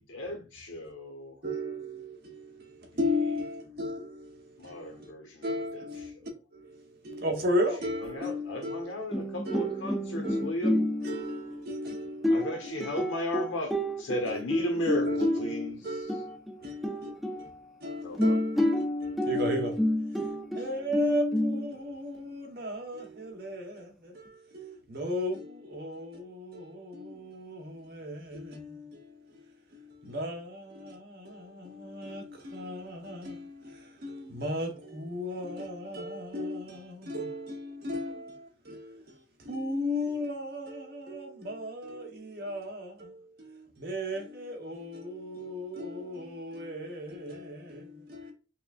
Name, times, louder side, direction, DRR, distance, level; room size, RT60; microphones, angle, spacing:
voice 1, 0.0-1.4 4.6-5.8 8.0-10.8 11.1-11.5 12.3-13.7 14.0-15.8 18.0-18.3, left 1 dB, 80° left, 1.2 m, -35 dB
voice 2, 1.4-5.1 5.4-8.9 9.4-9.9 10.2-12.3 12.7-12.9 14.3-14.4 14.7-15.3 15.5-17.5 17.8-18.6 19.0-19.9 20.1-48.3, left 1 dB, 50° right, 1.1 m, -36 dB
voice 3, 9.1-11.7 12.2-14.2 14.5-15.7 16.1-17.8 18.1-21.7, left 1 dB, ahead, 0.7 m, -30 dB
5.8 x 2.5 x 2.4 m
head